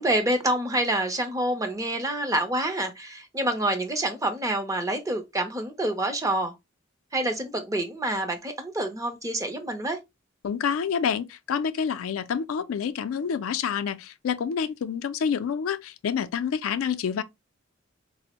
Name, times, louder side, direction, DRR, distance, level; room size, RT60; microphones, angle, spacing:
voice 1, 0.0-6.5 7.1-10.0, right 1 dB, 15° right, 0.5 m, -27 dB
voice 2, 10.4-17.2, left 7 dB, 80° left, 0.4 m, -28 dB
4.2 x 2.0 x 2.8 m
head